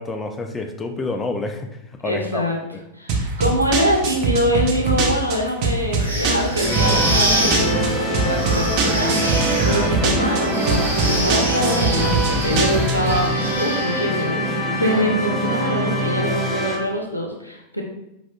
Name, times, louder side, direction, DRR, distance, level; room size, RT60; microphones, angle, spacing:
voice 1, 0.0-2.4 2.7-2.8, left 3 dB, 15° left, 5 dB, 0.4 m, -28 dB
voice 2, 2.0-2.6 3.0-13.3 13.6-17.8, equal, 90° left, 0 dB, 0.6 m, -24 dB
sound 1, 3.1-13.2, right 3 dB, 45° right, 0.7 m, -23 dB
sound 2, 6.0-14.3, right 1 dB, 80° right, 0.8 m, -27 dB
sound 3, 6.6-16.8, right 1 dB, 10° right, 0.8 m, -24 dB
4.5 x 4.1 x 2.3 m, 0.87 s
figure-of-eight pair, 90°, 0 cm